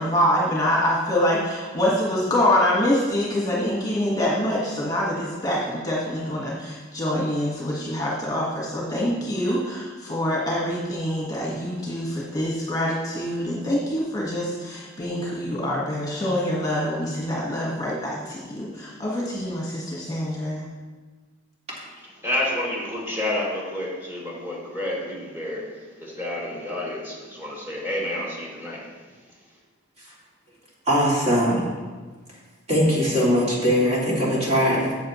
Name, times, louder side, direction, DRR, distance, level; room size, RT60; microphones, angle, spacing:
voice 1, 0.0-20.7, left 1 dB, 20° left, -4 dB, 1.6 m, -25 dB
voice 2, 22.2-29.6, left 1 dB, 10° right, -5 dB, 2.6 m, -30 dB
voice 3, 30.9-31.7 32.7-35.1, equal, 35° right, -5 dB, 2.7 m, -21 dB
13.5 x 7.7 x 3.1 m, 1.3 s
head